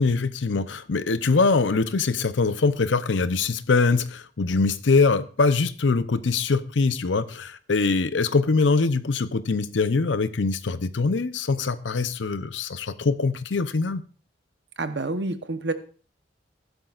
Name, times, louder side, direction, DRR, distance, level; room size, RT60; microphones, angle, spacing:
voice 1, 0.0-14.0, left 4 dB, 85° left, 0.7 m, -23 dB
voice 2, 14.8-15.7, right 2 dB, 65° right, 1.0 m, -28 dB
15.0 x 11.5 x 2.5 m
head